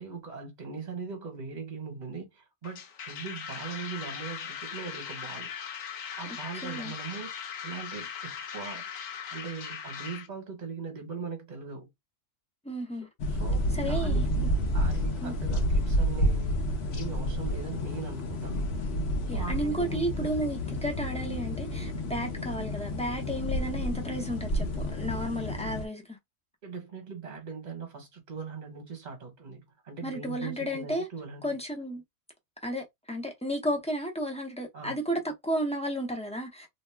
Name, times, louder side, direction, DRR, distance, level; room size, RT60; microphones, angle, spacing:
voice 1, 0.0-5.5 6.2-7.3 7.6-8.8 9.3-11.9 13.3-18.6 19.3-20.4 26.6-31.6 34.7-35.0, right 5 dB, 35° right, 1.1 m, -40 dB
sound 1, 2.6-10.3, left 8 dB, 85° left, 1.1 m, -39 dB
voice 2, 6.6-6.9 12.6-13.1 13.7-14.3 15.2-15.3 19.3-26.2 30.0-31.1 31.4-32.0 32.6-36.7, right 1 dB, 10° left, 0.4 m, -33 dB
sound 2, 13.2-25.9, equal, 60° left, 0.9 m, -30 dB
2.9 x 2.1 x 3.3 m
omnidirectional pair, 1.3 m